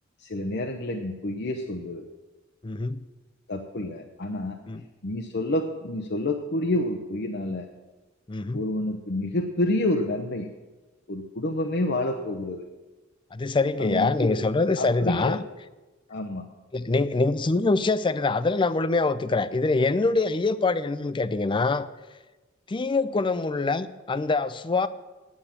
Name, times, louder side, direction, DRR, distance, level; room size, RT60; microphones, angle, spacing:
voice 1, 0.2-2.0 3.5-4.6 5.0-7.7 8.5-10.5 11.1-12.7 13.8-14.5 14.8-15.4 16.1-16.5, left 1 dB, 55° left, 3 dB, 0.8 m, -28 dB
voice 2, 2.6-3.0 4.7-4.8 8.3-8.6 13.3-15.4 16.7-21.9 22.7-24.9, left 3 dB, 25° left, 14 dB, 0.4 m, -24 dB
9.7 x 8.5 x 7.3 m, 1.2 s
head